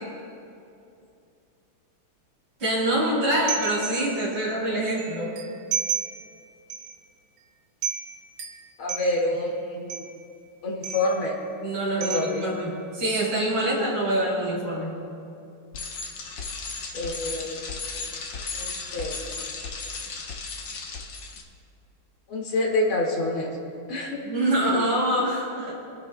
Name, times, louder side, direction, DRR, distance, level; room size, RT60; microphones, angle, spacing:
voice 1, 2.6-5.3 11.6-15.0 24.2-25.7, right 1 dB, 50° right, -9 dB, 3.8 m, -25 dB
sound 1, 3.5-4.4 5.0-6.4 6.7-7.0 7.4-7.5 7.8-9.4 9.9-10.3 10.8-11.4 12.0-12.8, right 7 dB, 80° right, 1.9 m, -33 dB
voice 2, 8.8-10.0 10.6-11.4 12.0-12.4 16.9-17.6 18.5-19.1 22.3-23.5 23.9-24.2, left 2 dB, 85° left, -2 dB, 2.8 m, -27 dB
Bicycle, 15.7-21.4, left 4 dB, 65° left, 1.7 m, -35 dB
29.0 x 11.0 x 2.2 m, 2.6 s
omnidirectional pair, 2.3 m